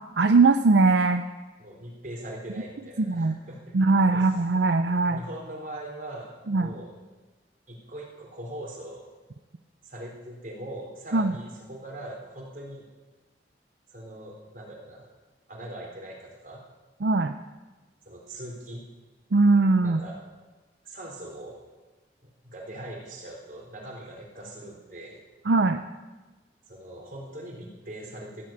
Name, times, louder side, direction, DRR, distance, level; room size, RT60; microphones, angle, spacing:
voice 1, 0.2-1.2 3.0-3.3 3.7-5.2 6.5-6.7 11.1-11.3 17.0-17.3 19.3-20.0 25.5-25.8, right 3 dB, 80° right, 8 dB, 0.6 m, -20 dB
voice 2, 1.6-4.3 5.1-6.9 7.7-9.1 9.8-12.9 13.9-15.1 15.5-16.6 18.1-18.9 19.8-20.2 20.8-21.6 22.2-25.2 26.7-28.4, right 1 dB, 50° right, -1 dB, 3.8 m, -41 dB
15.0 x 8.5 x 8.7 m, 1.2 s
head